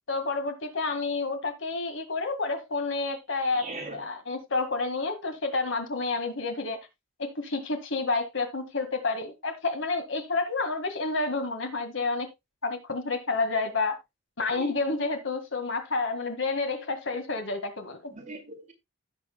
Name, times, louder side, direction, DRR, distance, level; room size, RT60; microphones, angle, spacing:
voice 1, 0.1-6.8 7.2-12.3 12.6-14.0 14.4-18.1, left 3 dB, 60° left, 1.9 m, -29 dB
voice 2, 3.5-4.0 14.5-14.7 18.1-18.7, right 2 dB, 35° right, 2.3 m, -40 dB
16.0 x 6.5 x 2.3 m
head